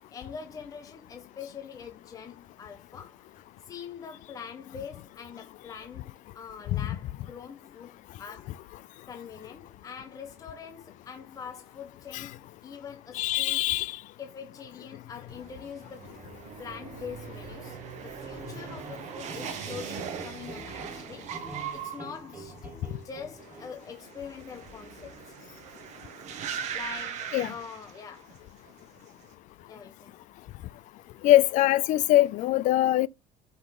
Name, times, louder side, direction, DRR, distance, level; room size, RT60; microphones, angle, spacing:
voice 1, 0.1-3.3 3.6-8.6 9.1-13.6 14.2-16.1 16.6-25.3 26.7-28.4 29.7-30.1, left 7 dB, 20° left, 0.8 m, -44 dB
voice 2, 13.1-13.9 27.3-27.5 31.2-33.1, left 15 dB, 55° left, 0.4 m, -22 dB
sound 1, 15.3-28.4 28.7-29.2, right 8 dB, 50° right, 1.2 m, -40 dB
sound 2, 18.8-23.8, right 3 dB, 10° right, 1.7 m, -46 dB
5.6 x 3.7 x 4.8 m
cardioid pair, 160°, 15 cm